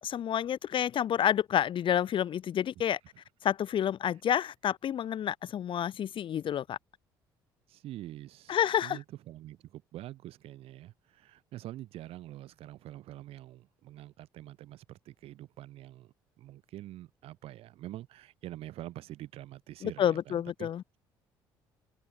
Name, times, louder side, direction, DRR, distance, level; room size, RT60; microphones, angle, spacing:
voice 1, 0.0-3.0 3.4-6.8 8.5-9.0 19.8-20.8, left 10 dB, 55° left, 1.2 m, -29 dB
voice 2, 7.7-20.7, right 14 dB, 65° right, 4.6 m, -46 dB
hypercardioid pair, 55°, 10 cm